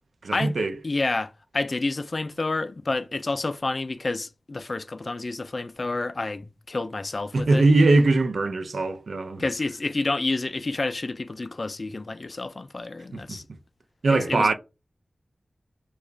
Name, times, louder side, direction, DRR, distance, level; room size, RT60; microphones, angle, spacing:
voice 1, 0.2-0.7 7.3-9.4 13.1-13.6 14.0-14.5, right 2 dB, 80° right, 0.5 m, -21 dB
voice 2, 0.8-7.6 9.4-13.4 14.3-14.5, left 3 dB, 45° left, 0.3 m, -29 dB
2.9 x 2.3 x 3.7 m
wide cardioid pair, 95°, 0 cm